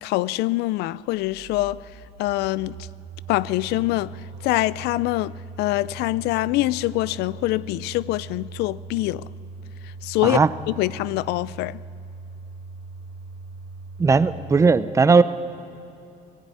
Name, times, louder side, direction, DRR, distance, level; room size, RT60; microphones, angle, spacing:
voice 1, 0.0-1.8 2.2-2.8 3.3-9.3 10.0-10.4 10.7-11.8, left 18 dB, 90° left, 0.4 m, -24 dB
sound 1, 1.0-14.7, right 4 dB, 80° right, 1.3 m, -40 dB
voice 2, 14.0-15.2, right 4 dB, 20° right, 0.5 m, -17 dB
18.0 x 15.0 x 9.4 m
cardioid pair, 145°, 16 cm